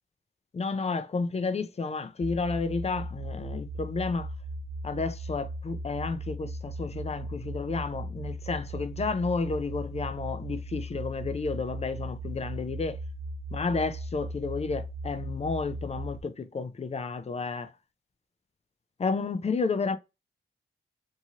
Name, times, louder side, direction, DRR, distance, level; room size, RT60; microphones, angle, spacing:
voice 1, 0.5-4.3 4.8-13.0 13.5-17.7 19.0-20.0, left 4 dB, 30° left, 0.4 m, -31 dB
sound 1, 2.2-16.2, right 1 dB, 70° right, 0.5 m, -37 dB
2.8 x 2.7 x 2.4 m
wide cardioid pair, 110°, 21 cm